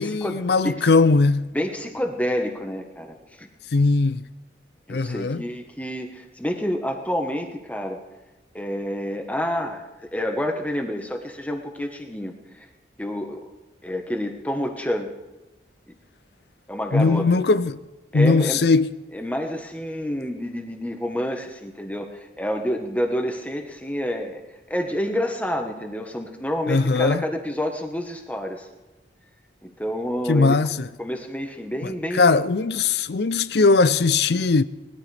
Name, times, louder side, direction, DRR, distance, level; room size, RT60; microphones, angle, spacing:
voice 1, 0.0-1.5 3.7-4.2 4.9-5.4 16.9-17.8 18.1-18.9 26.7-27.2 30.3-30.9 31.8-34.6, left 3 dB, 65° left, 0.5 m, -19 dB
voice 2, 1.5-3.5 4.9-8.0 8.5-12.7 13.0-13.4 13.8-15.1 16.7-17.3 18.1-18.6 19.1-24.4 24.7-28.7 29.6-30.6 31.0-32.4, equal, 10° left, 1.3 m, -28 dB
20.5 x 13.0 x 3.5 m
head